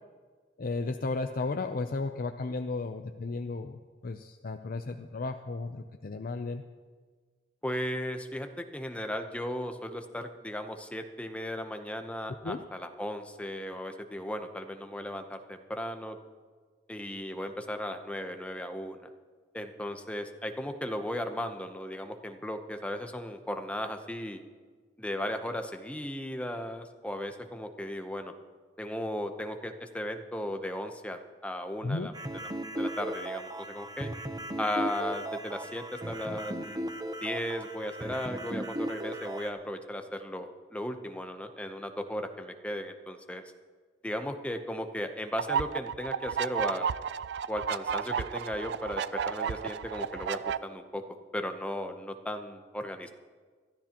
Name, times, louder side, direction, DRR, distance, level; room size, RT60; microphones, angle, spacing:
voice 1, 0.6-6.6 12.4-12.6 31.8-32.1, left 3 dB, 55° left, 6 dB, 0.5 m, -34 dB
voice 2, 7.6-16.2 16.9-19.1 19.5-24.4 25.0-28.3 28.8-32.1 32.8-34.1 34.6-36.9 37.2-43.4 44.0-46.9 47.5-51.0 51.3-53.1, left 1 dB, 5° left, 6 dB, 0.8 m, -36 dB
sound 1, 32.1-39.5, right 1 dB, 25° right, 0.8 m, -37 dB
sound 2, 45.4-50.6, right 7 dB, 65° right, 0.3 m, -32 dB
22.5 x 13.5 x 3.0 m, 1.5 s
head